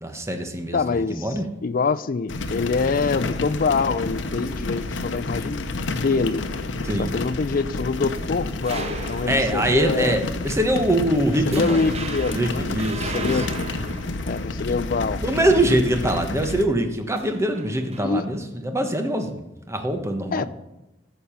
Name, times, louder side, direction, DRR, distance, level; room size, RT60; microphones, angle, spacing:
voice 1, 0.0-1.5 6.8-7.1 9.3-11.8 12.3-13.4 15.2-19.4 19.7-20.5, right 1 dB, 15° right, 5 dB, 1.2 m, -23 dB
voice 2, 0.7-1.3 1.6-6.4 7.0-10.2 11.5-12.7 13.1-13.8 14.3-15.2 18.0-18.2 20.3-20.5, left 4 dB, 50° left, 13 dB, 0.4 m, -25 dB
sound 1, 2.3-16.6, left 2 dB, 80° left, 0.8 m, -30 dB
sound 2, 7.8-10.0 10.5-10.7 11.0-11.2 11.5-15.0 17.1-18.0, right 2 dB, 35° right, 0.8 m, -36 dB
14.0 x 6.8 x 5.7 m, 0.97 s
head